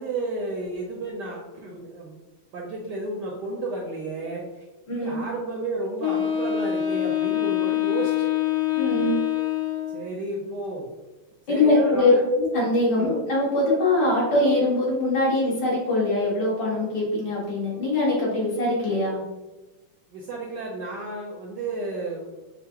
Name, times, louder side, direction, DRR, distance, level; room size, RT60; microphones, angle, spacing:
voice 1, 0.0-2.2 2.5-4.7 5.0-8.3 9.9-10.9 11.5-12.2 13.0-13.1 20.1-22.4, right 2 dB, 70° right, -1 dB, 1.0 m, -32 dB
voice 2, 4.9-5.2 8.8-9.2 11.5-19.2, left 2 dB, 55° left, -6 dB, 1.8 m, -22 dB
Wind instrument woodwind instrument, 6.0-10.1, left 12 dB, 90° left, 0.8 m, -25 dB
5.7 x 2.0 x 2.8 m, 1.1 s
omnidirectional pair, 2.3 m